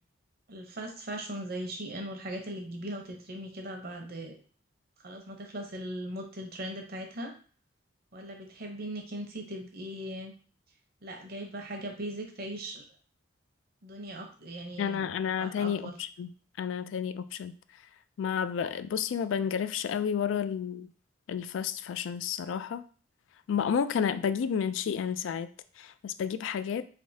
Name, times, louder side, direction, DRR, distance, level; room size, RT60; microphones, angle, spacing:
voice 1, 0.5-4.4 5.0-7.3 8.1-10.3 11.0-12.8 13.8-15.1 15.4-15.9, right 1 dB, 55° right, 3 dB, 0.8 m, -39 dB
voice 2, 14.8-16.3 16.6-17.6 18.2-20.9 21.3-22.8 23.5-25.5 25.8-26.8, left 7 dB, 80° left, 13 dB, 0.3 m, -31 dB
3.5 x 3.4 x 2.7 m, 0.42 s
head